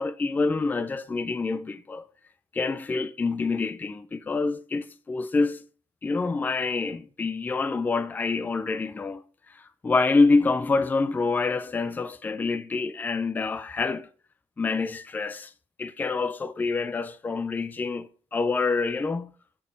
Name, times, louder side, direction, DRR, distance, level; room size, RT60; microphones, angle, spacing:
voice 1, 0.0-2.0 2.5-5.6 6.0-14.1 14.6-15.5 15.8-19.3, left 3 dB, 15° left, 0.4 m, -26 dB
7.2 x 4.4 x 5.1 m
cardioid pair, 165°, 11 cm